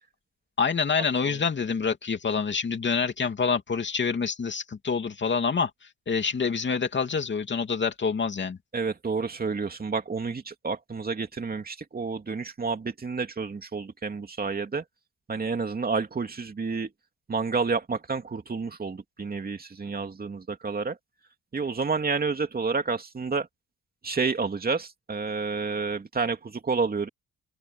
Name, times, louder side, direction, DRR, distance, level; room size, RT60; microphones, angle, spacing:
voice 1, 0.6-5.7 6.1-8.6, left 5 dB, 40° left, 2.8 m, -27 dB
voice 2, 8.7-14.8 15.3-16.9 17.3-21.0 21.5-23.5 24.0-27.1, right 4 dB, 30° right, 2.7 m, -29 dB
open air
cardioid pair, 90°, 30 cm